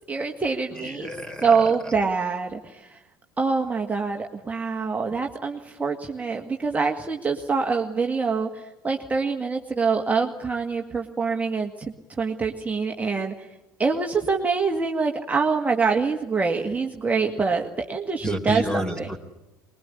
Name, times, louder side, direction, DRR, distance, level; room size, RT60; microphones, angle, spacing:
voice 1, 0.1-1.1 1.4-3.0 3.4-13.5 13.8-19.1, right 4 dB, 15° right, 2 dB, 2.0 m, -25 dB
voice 2, 0.7-1.9 18.2-19.2, equal, 10° left, 9 dB, 3.9 m, -30 dB
24.0 x 21.0 x 9.9 m, 1.0 s
figure-of-eight pair, 65°, 9 cm